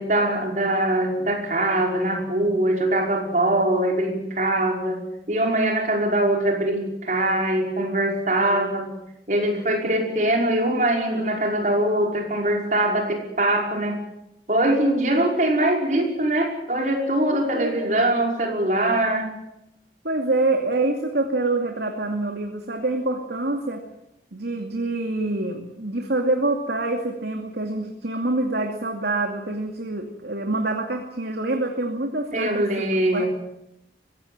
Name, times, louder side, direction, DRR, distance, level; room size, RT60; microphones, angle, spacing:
voice 1, 0.0-5.0 5.3-8.9 9.3-14.0 14.5-19.3 32.3-33.3, right 1 dB, 45° right, 1 dB, 5.3 m, -22 dB
voice 2, 17.3-18.0 20.0-23.8 24.3-32.9 33.1-33.3, right 2 dB, 75° right, 3 dB, 2.5 m, -26 dB
23.5 x 16.5 x 9.0 m, 0.83 s
head